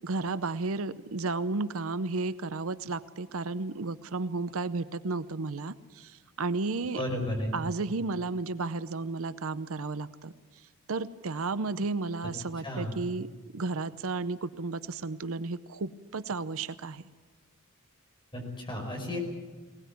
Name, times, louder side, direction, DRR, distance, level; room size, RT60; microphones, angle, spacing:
voice 1, 0.0-7.0 7.5-10.3 10.9-13.3 13.5-17.1, right 3 dB, 70° right, 15 dB, 0.7 m, -33 dB
voice 2, 6.9-7.5 12.6-12.9 18.3-19.2, left 1 dB, 25° left, 2 dB, 5.3 m, -33 dB
20.5 x 19.0 x 9.2 m, 1.4 s
head